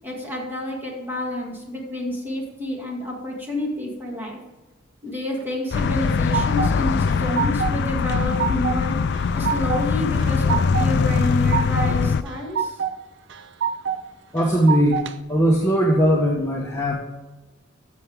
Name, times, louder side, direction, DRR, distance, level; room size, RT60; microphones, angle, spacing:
voice 1, 0.0-4.4 5.0-9.0 9.3-12.8, left 1 dB, 10° right, -2 dB, 2.3 m, -29 dB
sound 1, 5.7-12.2, left 5 dB, 55° left, 0.4 m, -22 dB
sound 2, 5.7-6.7 7.1-7.8 8.1-8.8 9.1-9.8 10.2-10.9 11.2-11.9 12.3-12.9 13.3-14.0 14.4-15.1, right 7 dB, 65° right, 0.6 m, -26 dB
voice 2, 14.3-16.9, equal, 15° left, -2 dB, 1.1 m, -19 dB
12.5 x 7.0 x 3.6 m, 1.1 s
head